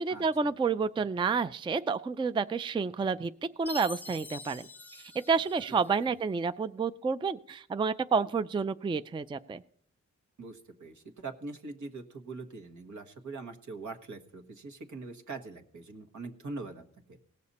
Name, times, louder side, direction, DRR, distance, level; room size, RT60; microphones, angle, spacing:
voice 1, 0.0-3.3 3.6-4.7 5.0-9.6, right 5 dB, 15° right, 13 dB, 0.3 m, -29 dB
Chime, 3.7-6.1, left 2 dB, 5° left, 0.8 m, -45 dB
voice 2, 10.4-17.2, right 3 dB, 75° right, 3 dB, 1.5 m, -43 dB
18.0 x 6.8 x 4.2 m, 0.65 s
wide cardioid pair, 95°, 30 cm